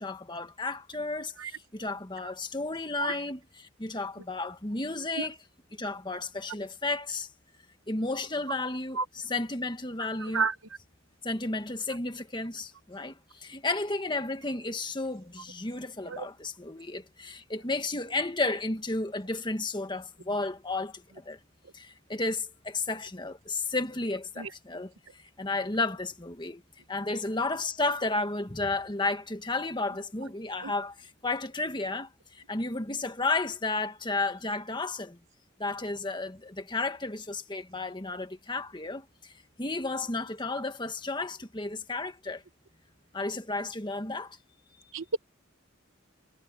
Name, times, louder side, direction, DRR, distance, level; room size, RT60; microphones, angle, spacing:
voice 1, 0.0-5.4 5.8-7.3 7.9-10.5 11.2-21.4 21.7-24.9 25.4-26.6 26.9-35.2 35.6-39.3 39.6-42.4 43.1-44.4, left 3 dB, 20° left, 1.6 m, -33 dB
voice 2, 10.2-10.5 16.1-16.3 24.4-24.5 30.6-30.7 44.9-45.2, right 4 dB, 75° right, 1.0 m, -30 dB
head